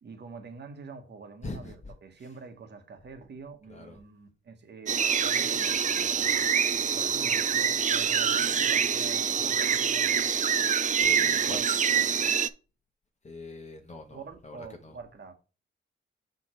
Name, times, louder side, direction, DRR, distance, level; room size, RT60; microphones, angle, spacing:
voice 1, 0.0-10.2 11.2-11.7 12.0-12.4 14.1-15.3, right 4 dB, 55° right, 1.3 m, -46 dB
voice 2, 1.4-1.9 3.7-4.0 11.0-11.6 13.2-14.9, left 2 dB, 35° left, 1.1 m, -42 dB
sound 1, 4.9-12.5, right 7 dB, 35° right, 0.4 m, -25 dB
5.8 x 4.8 x 4.4 m
cardioid pair, 105°, 21 cm